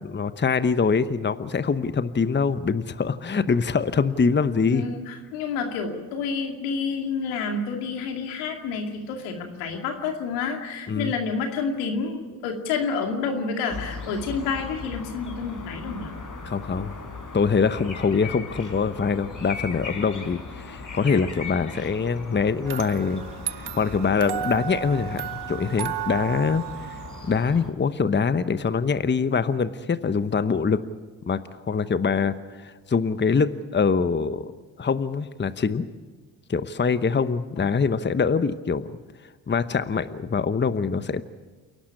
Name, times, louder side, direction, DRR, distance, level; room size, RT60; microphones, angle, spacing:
voice 1, 0.0-4.8 10.9-11.1 16.4-16.9 17.3-23.2 23.6-27.0 27.3-30.8 31.3-34.5 34.8-35.9 36.5-38.9 39.5-41.2, left 5 dB, 20° left, 13 dB, 1.0 m, -24 dB
voice 2, 4.6-16.1 37.6-37.8, left 5 dB, 85° left, 4 dB, 2.5 m, -29 dB
sound 1, 13.7-27.7, left 4 dB, 40° left, 4.5 m, -38 dB
sound 2, 22.7-27.7, right 10 dB, 50° right, 1.2 m, -34 dB
28.5 x 11.5 x 9.8 m, 1.3 s
hypercardioid pair, 55°, 49 cm